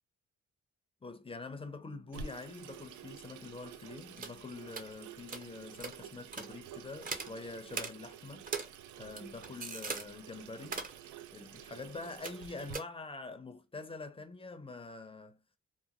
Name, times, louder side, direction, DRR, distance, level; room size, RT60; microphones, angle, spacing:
voice 1, 1.0-8.4 9.0-10.8 11.3-15.4, left 3 dB, 20° left, 0.6 m, -45 dB
Water tap faucet / Sink (filling or washing), 2.1-12.7, right 7 dB, 80° right, 0.5 m, -50 dB
sound 1, 4.2-4.3 4.7-4.9 5.3-5.4 5.8-6.0 6.3-6.5 7.0-7.3 7.7-7.9 8.5-8.7 9.0-10.0 10.6-11.0 12.2-12.4 12.7-12.8, right 4 dB, 30° right, 0.7 m, -39 dB
2.9 x 2.2 x 2.4 m
cardioid pair, 90°, 30 cm